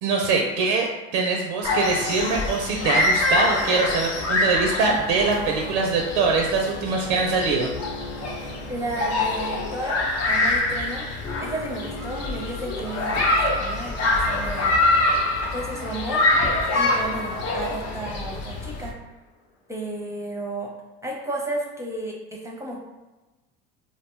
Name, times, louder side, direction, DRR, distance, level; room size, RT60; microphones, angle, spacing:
voice 1, 0.0-7.7, right 4 dB, 75° right, 1 dB, 0.5 m, -23 dB
sound 1, 1.6-18.9, left 2 dB, 50° left, 0.7 m, -25 dB
sound 2, 3.2-18.6, left 2 dB, 85° left, 1.1 m, -41 dB
voice 2, 8.7-10.0 10.3-11.0 11.4-14.9 15.3-16.2 16.7-18.9 19.7-20.7 21.0-22.8, right 1 dB, 10° right, -3 dB, 0.6 m, -33 dB
2.6 x 2.2 x 3.1 m, 1.1 s
hypercardioid pair, 75°, 33 cm